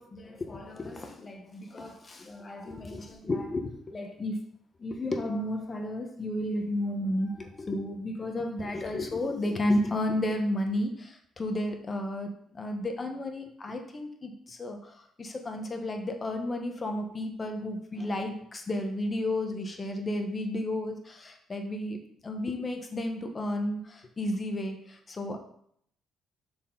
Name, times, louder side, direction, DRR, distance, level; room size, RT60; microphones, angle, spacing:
voice 1, 0.0-4.4 4.8-22.0 22.2-25.4, left 1 dB, 30° left, 4 dB, 1.1 m, -32 dB
6.4 x 4.3 x 3.9 m, 0.65 s
cardioid pair, 95°, 0 cm